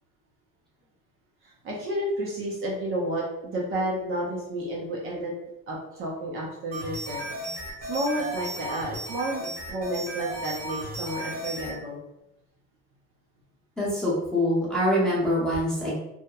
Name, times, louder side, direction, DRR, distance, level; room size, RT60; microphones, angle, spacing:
voice 1, 1.4-5.3 5.7-7.2 7.8-12.0, right 1 dB, 45° right, -3 dB, 0.5 m, -31 dB
sound 1, 6.7-11.7, right 1 dB, 60° right, 1.0 m, -35 dB
voice 2, 13.8-15.9, equal, ahead, -9 dB, 0.7 m, -24 dB
2.8 x 2.0 x 2.2 m, 0.87 s
cardioid pair, 160°, 31 cm